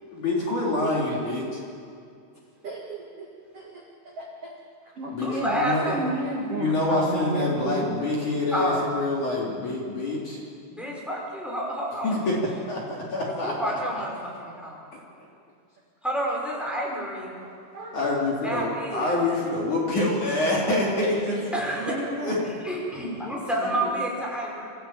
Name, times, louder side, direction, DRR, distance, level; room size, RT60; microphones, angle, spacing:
voice 1, 0.1-1.4 5.1-5.8 6.5-10.4 12.0-12.4 12.7-13.5 17.9-21.4 22.2-22.3 23.6-23.7, left 2 dB, 40° left, -4 dB, 4.0 m, -26 dB
voice 2, 0.8-1.2 2.6-3.3 3.5-3.8 4.2-4.5 5.0-5.6 5.8-7.9 17.4-18.0 21.0-21.1 21.8-22.4, right 2 dB, 45° right, -2 dB, 2.1 m, -33 dB
voice 3, 5.2-6.1 8.5-8.9 10.7-12.2 13.3-14.8 16.0-17.3 18.4-19.1 21.5-21.9 22.4-24.6, right 1 dB, ahead, -3 dB, 4.7 m, -29 dB
27.0 x 15.0 x 8.9 m, 2.3 s
omnidirectional pair, 5.8 m